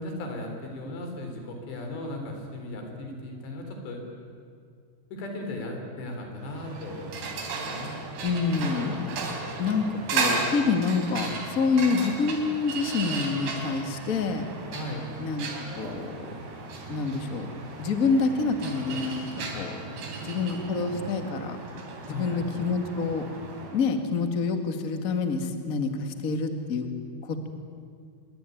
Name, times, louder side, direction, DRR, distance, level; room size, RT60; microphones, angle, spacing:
voice 1, 0.0-4.0 5.1-7.3 7.6-8.0 9.1-9.5 14.7-15.1 22.1-22.5, left 1 dB, 90° left, 3 dB, 6.0 m, -37 dB
sound 1, 6.4-23.9, right 3 dB, 75° right, 5.2 m, -35 dB
voice 2, 8.2-9.2 9.6-9.8 10.1-14.4 15.2-15.5 15.8-16.3 16.9-17.5 17.8-19.2 19.5-19.8 20.2-21.6 22.1-23.2 23.7-26.8 27.2-27.5, left 4 dB, 40° left, 6 dB, 1.2 m, -27 dB
25.5 x 23.0 x 9.2 m, 2.2 s
omnidirectional pair, 4.8 m